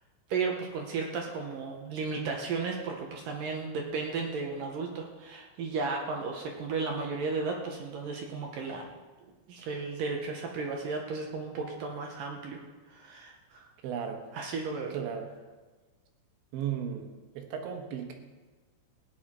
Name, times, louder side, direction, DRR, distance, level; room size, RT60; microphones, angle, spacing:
voice 1, 0.3-8.8 9.2-12.6 12.9-13.7 14.3-15.0, right 4 dB, 70° right, 1 dB, 2.2 m, -34 dB
voice 2, 13.8-14.2 14.9-15.3 16.5-17.1 17.4-18.1, right 8 dB, 85° right, 4 dB, 3.7 m, -35 dB
17.0 x 10.5 x 4.4 m, 1.3 s
omnidirectional pair, 5.2 m